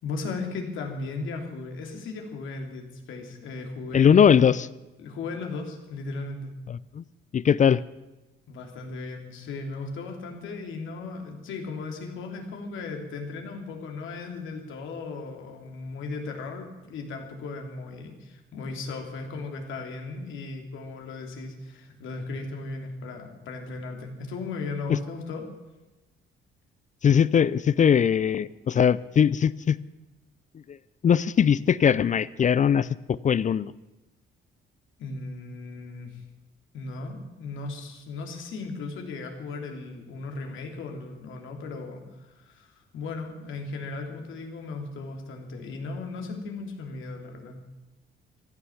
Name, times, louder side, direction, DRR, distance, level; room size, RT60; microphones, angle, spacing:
voice 1, 0.0-4.4 5.0-6.5 8.5-25.4 35.0-36.2 36.7-47.6, left 3 dB, 80° left, 3 dB, 2.9 m, -36 dB
voice 2, 3.9-4.7 6.7-7.0 7.3-7.8 24.9-25.0 27.0-29.8 30.7-30.8 31.0-33.7, left 8 dB, 40° left, 19 dB, 0.5 m, -21 dB
15.0 x 11.5 x 7.2 m, 1.1 s
cardioid pair, 90°, 20 cm